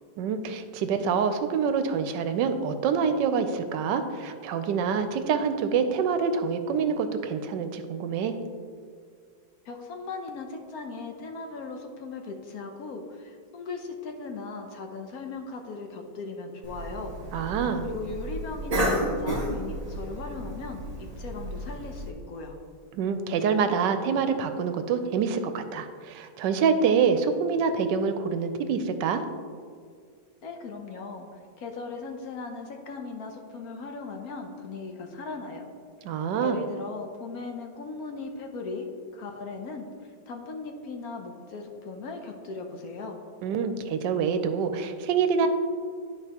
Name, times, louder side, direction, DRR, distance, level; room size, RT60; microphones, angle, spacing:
voice 1, 0.2-8.3 17.3-17.9 22.9-29.2 36.0-36.6 43.4-45.5, right 6 dB, 80° right, 9 dB, 1.2 m, -26 dB
voice 2, 9.7-17.5 17.8-22.5 30.4-31.3 31.6-35.7 36.4-38.9 39.1-39.9 40.3-43.2, left 3 dB, 65° left, 3 dB, 1.0 m, -38 dB
Cough, 16.6-22.1, right 1 dB, 35° right, 0.6 m, -32 dB
11.5 x 4.7 x 2.9 m, 2.1 s
omnidirectional pair, 1.9 m